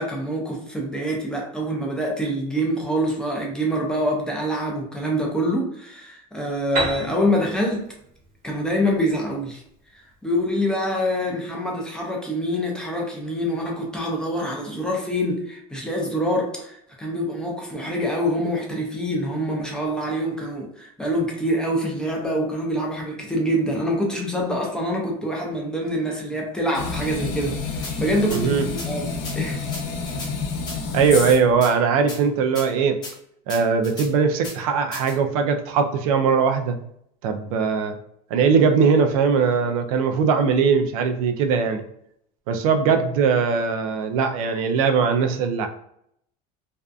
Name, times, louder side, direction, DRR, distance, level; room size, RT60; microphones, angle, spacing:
voice 1, 0.0-7.9 8.4-9.6 9.9-27.6 28.0-28.6 28.8-29.6, equal, 5° left, -2 dB, 0.4 m, -25 dB
Piano, 6.8-10.4, right 2 dB, 45° right, 1.0 m, -32 dB
sound 1, 26.7-31.6, left 4 dB, 55° left, 0.6 m, -29 dB
sound 2, 27.8-27.9 28.3-28.4 28.8-28.9 29.2-29.3 29.7-30.3 30.7-30.8 31.1-31.7 32.1-32.2 32.5-32.7 33.0-33.1 33.5-34.1 34.4-34.5 34.9-35.1, left 2 dB, 25° left, 0.8 m, -35 dB
voice 2, 28.3-28.7 30.9-33.0 33.5-36.8 37.2-37.9 38.3-41.8 42.5-45.7, right 5 dB, 85° right, 6 dB, 0.4 m, -20 dB
2.5 x 2.3 x 2.3 m, 0.72 s
cardioid pair, 155°, 18 cm